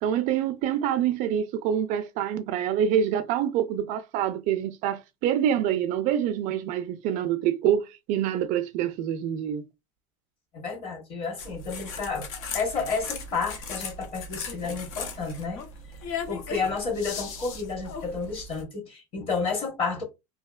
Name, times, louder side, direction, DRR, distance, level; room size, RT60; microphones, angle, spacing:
voice 1, 0.0-9.6, right 9 dB, 50° right, 0.4 m, -26 dB
voice 2, 10.5-15.6 16.3-20.0, left 4 dB, 35° left, 1.1 m, -31 dB
sound 1, 11.4-18.6, left 4 dB, 75° left, 0.8 m, -37 dB
2.8 x 2.8 x 2.3 m
cardioid pair, 155°, 17 cm